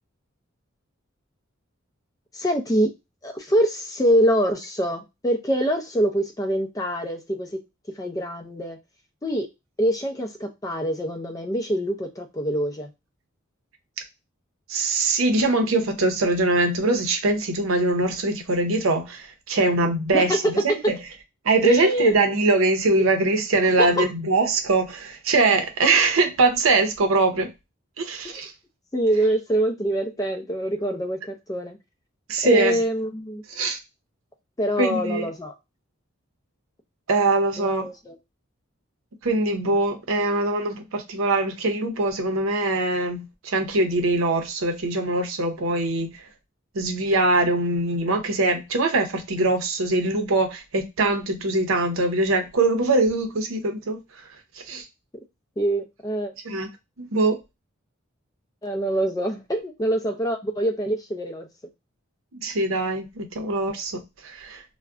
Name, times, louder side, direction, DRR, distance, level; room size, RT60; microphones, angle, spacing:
voice 1, 2.3-2.9 3.2-7.6 8.0-8.8 9.2-9.5 9.8-12.9 20.1-20.4 21.6-22.1 23.8-24.1 28.2-28.3 28.9-31.8 32.4-33.4 34.6-35.5 37.6-38.2 55.6-56.3 58.6-61.5, right 1 dB, 15° left, 0.4 m, -25 dB
voice 2, 14.7-21.0 21.4-27.5 28.0-28.5 32.3-32.8 33.5-33.8 34.8-35.3 37.1-37.9 39.2-46.3 46.7-54.0 54.5-54.8 56.4-56.7 57.0-57.4 62.3-64.6, right 2 dB, 80° right, 0.6 m, -22 dB
2.4 x 2.1 x 3.5 m
head